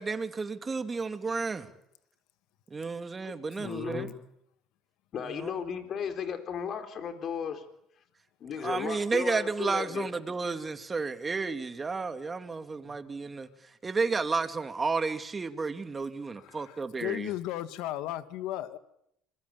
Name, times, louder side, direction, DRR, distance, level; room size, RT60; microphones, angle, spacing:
voice 1, 0.0-1.7 2.7-4.1 5.2-5.6 8.6-17.3, right 4 dB, 25° right, 2.8 m, -32 dB
voice 2, 3.6-4.1 5.1-7.6 8.4-10.1 12.8-12.9, left 7 dB, 55° left, 4.1 m, -35 dB
voice 3, 16.4-16.8 17.0-18.8, left 14 dB, 75° left, 1.9 m, -35 dB
27.0 x 22.0 x 8.7 m
supercardioid pair, 80°, 0 cm